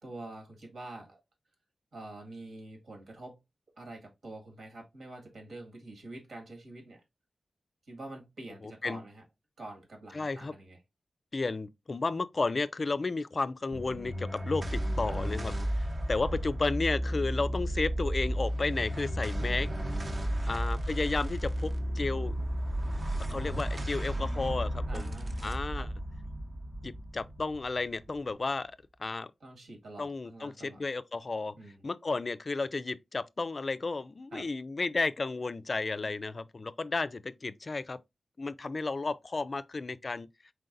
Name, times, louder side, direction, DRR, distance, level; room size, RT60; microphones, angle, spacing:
voice 1, 0.0-1.2 1.9-3.4 3.8-7.0 7.9-9.2 9.6-10.8 15.1-15.2 16.3-16.4 20.5-20.6 24.9-25.9 29.4-30.8 31.6-31.8 34.3-34.5 36.0-36.1, right 2 dB, 75° right, 1.8 m, -46 dB
voice 2, 8.6-9.0 10.1-10.5 11.3-19.7 20.5-22.3 23.3-25.1 25.4-25.9 26.8-28.7 29.0-29.3 30.0-31.5 31.8-38.0 38.4-40.3, left 3 dB, 45° left, 0.3 m, -33 dB
sound 1, 13.7-28.3, equal, 40° right, 0.8 m, -33 dB
4.6 x 3.8 x 2.5 m
wide cardioid pair, 110°, 0 cm